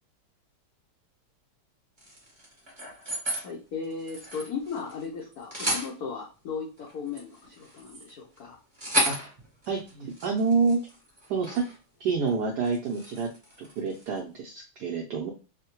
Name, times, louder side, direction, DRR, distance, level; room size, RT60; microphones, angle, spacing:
sound 1, 2.0-3.5 3.8-5.1 5.3-5.9 6.8-11.8 12.1-12.3 12.6-14.2, equal, 20° right, 1.0 m, -34 dB
voice 1, 3.4-8.6, left 5 dB, 75° left, -3 dB, 0.8 m, -36 dB
voice 2, 9.7-10.8 11.3-11.7 12.0-13.3 13.6-15.3, right 5 dB, 80° right, 0 dB, 0.9 m, -28 dB
3.6 x 2.1 x 2.8 m, 0.33 s
omnidirectional pair, 2.3 m